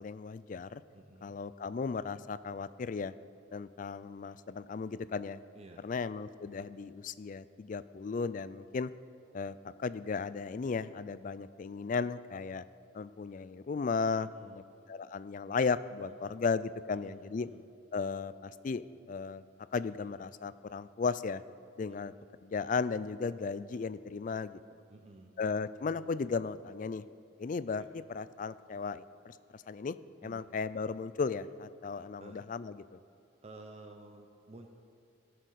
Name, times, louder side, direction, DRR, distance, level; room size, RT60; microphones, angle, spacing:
voice 1, 0.0-0.8 1.2-3.1 3.5-5.4 5.8-8.9 9.3-12.6 12.9-14.6 14.9-17.5 17.9-19.4 19.7-21.4 21.8-22.1 22.4-24.6 25.4-27.0 27.4-27.8 28.1-30.0 30.2-33.0, left 5 dB, 40° left, 15 dB, 0.3 m, -35 dB
voice 2, 0.9-1.4 5.5-5.9 14.2-14.7 16.1-16.3 16.9-17.6 24.9-25.4 27.8-27.9 30.2-30.4 32.2-32.5 33.4-34.7, right 2 dB, 30° right, 4 dB, 0.6 m, -53 dB
16.5 x 6.7 x 6.4 m, 2.6 s
head